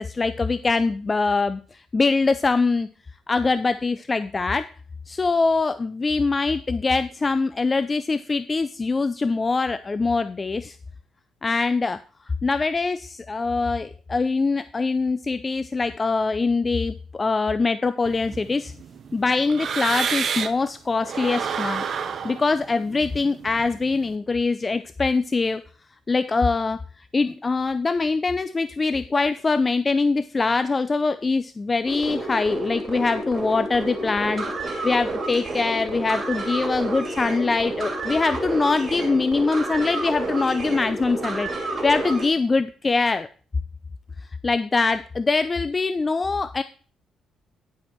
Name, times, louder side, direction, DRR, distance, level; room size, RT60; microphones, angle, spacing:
voice 1, 0.0-2.9 3.3-4.7 5.1-10.8 11.4-12.0 12.4-18.7 19.1-21.8 22.2-25.6 26.1-26.8 27.1-34.4 34.8-41.5 41.8-43.3 44.4-46.6, left 3 dB, 30° left, 12 dB, 0.4 m, -23 dB
sound 1, 18.0-20.7 21.0-24.1, right 6 dB, 55° right, 0.8 m, -30 dB
sound 2, 31.8-42.3, right 2 dB, 35° right, 2.7 m, -30 dB
10.5 x 5.1 x 4.5 m, 0.39 s
cardioid pair, 90°, 0 cm